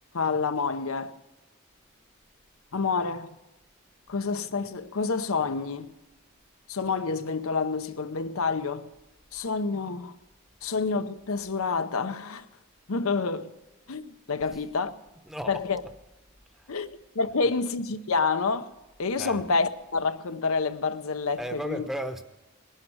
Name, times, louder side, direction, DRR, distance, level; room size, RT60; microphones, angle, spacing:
voice 1, 0.1-1.2 2.7-3.3 4.1-5.9 6.7-8.9 9.3-10.1 10.6-12.5 12.9-13.5 13.9-14.9 15.5-15.8 16.7-16.9 17.1-18.7 19.0-21.9, left 4 dB, 85° left, 0.8 m, -28 dB
voice 2, 15.2-15.9 16.5-16.9 17.4-17.5 19.2-19.4 21.4-22.2, equal, ahead, 0.8 m, -36 dB
19.5 x 11.5 x 6.2 m
head